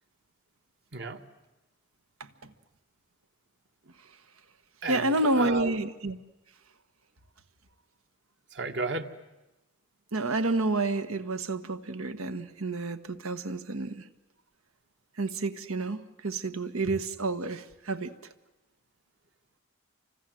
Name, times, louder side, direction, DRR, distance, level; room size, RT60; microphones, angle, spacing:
voice 1, 2.2-2.5 4.9-6.2 10.1-14.1 15.2-18.3, right 2 dB, 80° right, 10 dB, 1.5 m, -30 dB
voice 2, 4.8-5.7 8.5-9.1, right 4 dB, 55° right, 6 dB, 1.8 m, -33 dB
29.5 x 25.5 x 7.8 m, 1.0 s
head